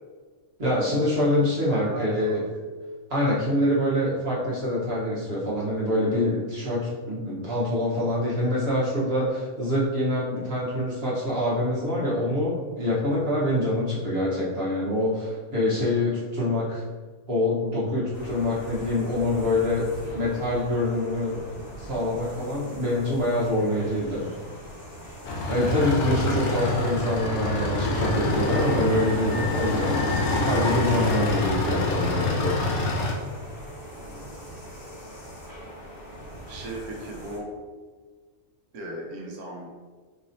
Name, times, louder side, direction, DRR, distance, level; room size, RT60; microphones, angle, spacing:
voice 1, 0.6-2.4 3.1-16.8 17.3-19.9 20.1-21.4 21.8-24.3 25.5-30.1 30.3-32.6, left 1 dB, 45° right, -8 dB, 1.4 m, -25 dB
voice 2, 1.7-2.6 34.0-34.3 36.5-37.5 38.7-39.7, right 1 dB, 80° right, 0 dB, 1.3 m, -37 dB
sound 1, 18.1-37.4, equal, 45° left, 1.9 m, -42 dB
sound 2, 25.2-33.1, left 2 dB, 85° left, 1.2 m, -25 dB
4.7 x 3.0 x 2.7 m, 1.4 s
omnidirectional pair, 1.5 m